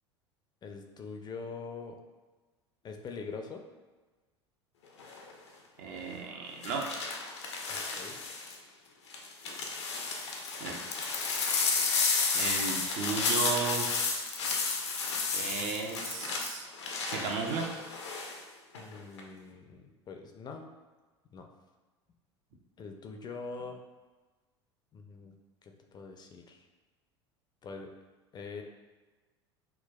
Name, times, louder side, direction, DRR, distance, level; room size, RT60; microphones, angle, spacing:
voice 1, 0.6-2.0 2.8-3.6 7.7-8.2 18.8-20.7 21.3-21.5 22.8-23.8 24.9-25.3 25.6-26.6 27.6-27.9 28.3-28.6, left 4 dB, 30° left, 4 dB, 0.4 m, -43 dB
sound 1, 5.0-5.3 6.6-8.6 9.1-18.4 18.7-19.2, left 4 dB, 75° left, 0.6 m, -32 dB
voice 2, 5.8-6.9 10.6-10.8 12.3-13.9 15.3-16.7 17.0-17.7, right 5 dB, 55° right, 1 dB, 0.7 m, -34 dB
5.8 x 2.3 x 2.2 m, 1.3 s
figure-of-eight pair, 75°, 15 cm